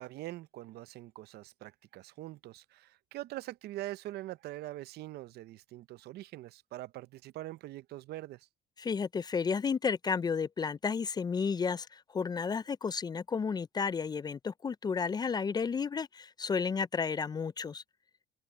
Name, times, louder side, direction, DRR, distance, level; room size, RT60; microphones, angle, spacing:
voice 1, 0.0-8.5, right 16 dB, 75° right, 0.6 m, -43 dB
voice 2, 8.8-17.8, left 5 dB, 25° left, 0.4 m, -32 dB
cardioid pair, 110°, 17 cm